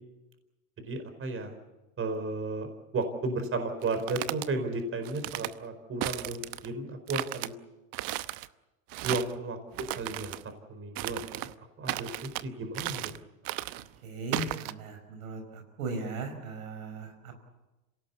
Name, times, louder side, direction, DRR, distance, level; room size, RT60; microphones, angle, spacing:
voice 1, 0.8-1.5 2.0-7.5 9.0-9.6 10.0-10.3 10.7-11.5 11.8-13.1, right 3 dB, 30° right, 8 dB, 4.6 m, -34 dB
sound 1, 3.8-4.5 5.0-5.5 6.0-6.7 7.1-7.5 7.9-8.5 8.9-9.4 9.7-10.4 11.0-11.5 11.9-12.4 12.7-13.2 13.4-13.9 14.3-14.7, right 17 dB, 50° right, 0.9 m, -35 dB
voice 2, 14.0-17.4, right 3 dB, 85° right, 5 dB, 5.2 m, -38 dB
26.5 x 18.0 x 8.4 m, 1.1 s
supercardioid pair, 105°, 42 cm